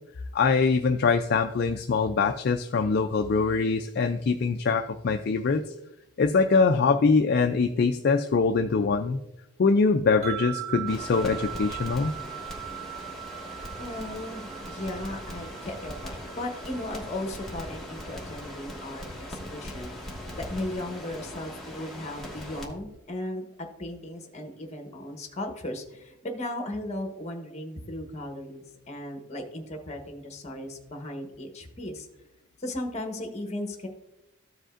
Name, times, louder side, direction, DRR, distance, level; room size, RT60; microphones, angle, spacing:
voice 1, 0.3-5.6 6.2-9.2 9.6-12.1, left 4 dB, 45° left, 5 dB, 0.3 m, -23 dB
sound 1, 10.2-19.5, right 15 dB, 30° right, 1.0 m, -41 dB
Crackle, 10.9-22.7, equal, ahead, 1.2 m, -40 dB
voice 2, 13.7-23.4 23.8-32.1 32.6-33.9, left 1 dB, 30° left, 4 dB, 1.1 m, -36 dB
14.5 x 5.0 x 2.5 m, 0.93 s
head